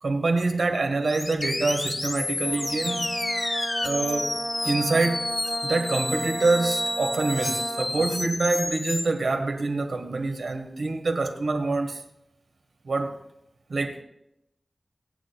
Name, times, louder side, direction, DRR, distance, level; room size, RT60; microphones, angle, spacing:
voice 1, 0.0-3.2 3.8-4.3 4.6-5.3 5.6-12.0 12.8-13.2 13.7-14.0, right 3 dB, 80° right, 1.4 m, -26 dB
sound 1, 1.1-9.0, left 2 dB, 40° left, 1.0 m, -30 dB
Brass instrument, 2.4-8.3, right 2 dB, 55° right, 1.0 m, -34 dB
23.5 x 9.0 x 2.3 m
wide cardioid pair, 75°, 0 cm